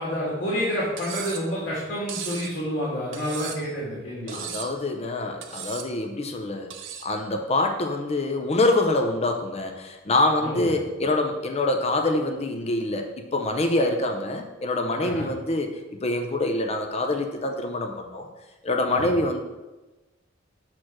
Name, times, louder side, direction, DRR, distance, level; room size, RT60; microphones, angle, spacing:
voice 1, 0.0-4.4 10.4-10.7 15.0-15.3 18.9-19.1, equal, 65° left, -6 dB, 2.0 m, -29 dB
Cutlery silverware, 1.0-1.5 2.1-2.5 3.1-3.7 4.3-4.8 5.4-5.9 6.7-7.1, right 9 dB, 80° right, 0.7 m, -36 dB
voice 2, 4.3-6.7 7.0-15.7 16.0-18.3 18.6-19.4, left 2 dB, 35° left, 4 dB, 0.6 m, -25 dB
6.1 x 4.5 x 6.2 m, 1.1 s
head